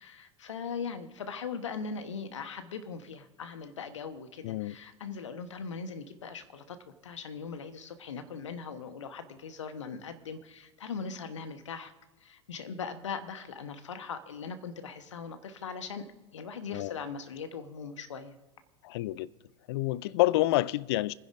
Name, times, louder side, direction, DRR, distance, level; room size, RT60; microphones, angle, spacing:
voice 1, 0.0-11.9 12.2-16.1 16.3-18.4, left 5 dB, 75° left, 1.1 m, -40 dB
voice 2, 4.4-4.7 16.7-16.9 18.8-19.3 19.7-21.1, left 17 dB, 60° left, 0.4 m, -28 dB
29.0 x 10.0 x 2.6 m
figure-of-eight pair, 85°, 16 cm